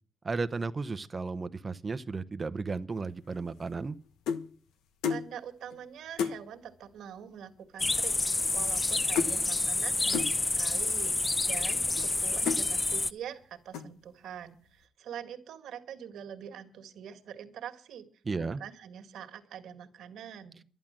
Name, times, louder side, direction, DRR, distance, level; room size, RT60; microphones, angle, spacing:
voice 1, 0.2-4.0 18.2-18.6, right 4 dB, 30° right, 0.8 m, -34 dB
sound 1, 3.3-4.5 5.0-5.3 5.7-5.8 6.2-6.4 7.3-7.4 7.6-7.9 8.2-8.9 9.1-9.4 10.1-10.4 11.1-11.2 11.7-12.1 12.5-12.7 13.2-13.4 13.7-14.1, left 6 dB, 90° left, 1.2 m, -33 dB
voice 2, 5.1-18.1 18.4-20.6, right 9 dB, 75° right, 2.0 m, -44 dB
sound 2, 7.8-13.1, left 2 dB, 20° left, 0.7 m, -28 dB
11.5 x 11.0 x 7.5 m
cardioid pair, 90°, 0 cm